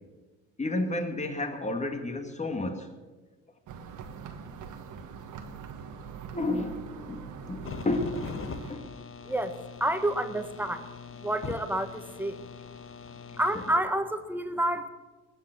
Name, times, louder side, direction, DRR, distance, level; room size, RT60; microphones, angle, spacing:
voice 1, 0.6-2.9 6.3-8.3 8.7-8.9, left 2 dB, 25° left, 2.2 m, -31 dB
sound 1, 3.7-8.7, right 6 dB, 85° right, 1.7 m, -43 dB
sound 2, 7.6-13.8, left 5 dB, 45° left, 1.2 m, -41 dB
voice 2, 9.0-12.4 13.1-14.9, right 1 dB, 5° right, 1.4 m, -30 dB
20.5 x 8.1 x 7.6 m
cardioid pair, 90°, 30 cm